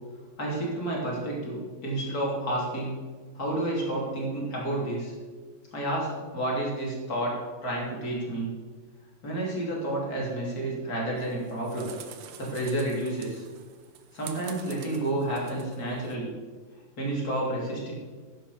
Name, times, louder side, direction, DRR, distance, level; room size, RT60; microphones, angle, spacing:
voice 1, 0.4-3.0 3.3-5.1 5.7-7.3 7.6-8.5 9.2-11.9 12.4-13.4 14.1-16.3 17.0-17.9, right 1 dB, 50° left, -3 dB, 3.3 m, -30 dB
sound 1, 11.2-16.2, right 8 dB, 75° right, 1.6 m, -47 dB
10.5 x 5.9 x 6.7 m, 1.4 s
omnidirectional pair, 2.1 m